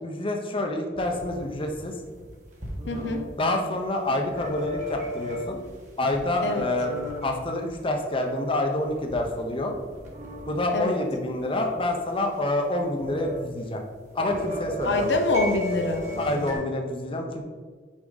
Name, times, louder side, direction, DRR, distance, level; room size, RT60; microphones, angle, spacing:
voice 1, 0.0-1.9 3.3-5.6 6.0-6.9 7.2-9.8 10.5-13.8 14.1-15.2 16.2-17.4, left 1 dB, 30° left, 3 dB, 0.8 m, -27 dB
sound 1, 0.9-3.3 4.2-5.7 6.1-7.9 8.2-8.3 8.8-10.6 11.0-11.1 11.3-11.4 11.7-12.0 12.8-13.4 13.7-16.5, equal, 45° right, 1.5 m, -35 dB
voice 2, 2.9-3.2 6.4-6.7 10.7-11.0 14.8-16.1, left 2 dB, 75° left, 4 dB, 0.7 m, -25 dB
6.1 x 4.9 x 4.0 m, 1.5 s
head